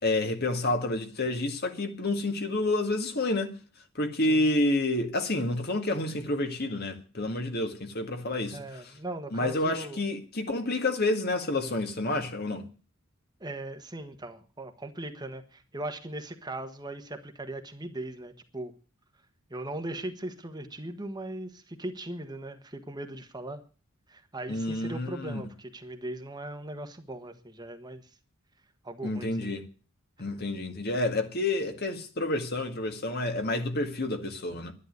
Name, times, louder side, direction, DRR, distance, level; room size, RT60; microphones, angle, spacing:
voice 1, 0.0-3.5 4.0-8.8 9.3-12.6 24.5-25.4 29.0-29.6 30.2-34.7, left 2 dB, 50° left, 2.0 m, -29 dB
voice 2, 8.5-10.0 13.4-18.7 19.5-23.6 24.1-28.0 28.8-29.5, right 1 dB, 20° right, 1.4 m, -39 dB
11.0 x 11.0 x 9.4 m
head